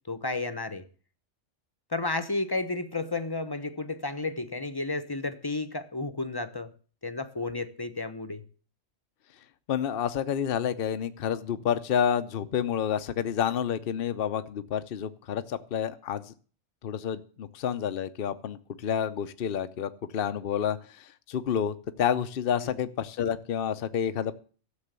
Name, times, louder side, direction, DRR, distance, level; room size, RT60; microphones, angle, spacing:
voice 1, 0.1-0.9 1.9-6.7 7.0-8.4 22.6-22.8, left 3 dB, 20° left, 0.9 m, -32 dB
voice 2, 9.7-16.3 16.8-24.3, left 8 dB, 55° left, 0.9 m, -29 dB
13.0 x 7.1 x 8.1 m
omnidirectional pair, 1.2 m